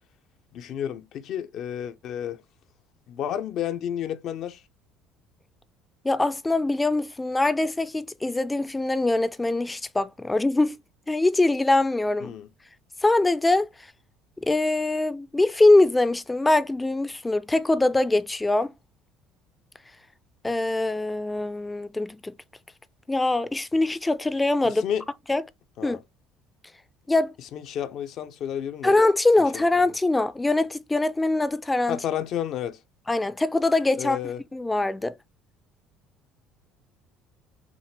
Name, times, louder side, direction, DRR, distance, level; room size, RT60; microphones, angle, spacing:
voice 1, 0.5-2.4 3.1-4.6 12.2-12.5 24.6-25.1 25.8-26.0 27.5-29.0 29.5-29.7 31.9-32.8 34.0-34.4, left 10 dB, 60° left, 0.6 m, -31 dB
voice 2, 6.0-10.8 11.1-12.3 13.0-13.7 14.4-18.7 20.4-22.3 23.1-24.8 25.3-25.4 25.8-26.0 27.1-27.3 28.8-32.0 33.1-34.2 34.5-35.2, left 2 dB, 15° left, 0.4 m, -23 dB
5.9 x 2.1 x 3.2 m
supercardioid pair, 85°, 0 cm